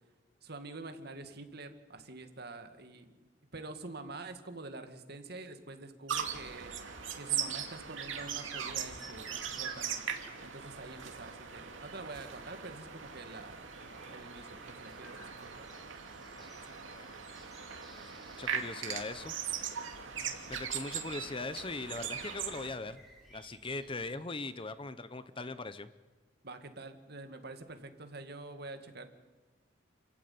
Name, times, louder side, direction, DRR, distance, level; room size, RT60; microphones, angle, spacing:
voice 1, 0.4-3.1 3.5-6.7 7.2-10.0 10.4-15.7 20.0-20.4 26.4-29.0, right 2 dB, 55° right, 8 dB, 2.1 m, -47 dB
sound 1, 6.1-22.7, right 7 dB, 80° right, 2.7 m, -40 dB
sound 2, 8.2-24.1, right 1 dB, ahead, 5.8 m, -59 dB
voice 2, 16.2-17.2 17.9-19.3 20.5-23.0 23.3-25.9, left 3 dB, 25° left, 13 dB, 0.9 m, -41 dB
28.5 x 14.5 x 9.5 m, 1.3 s
head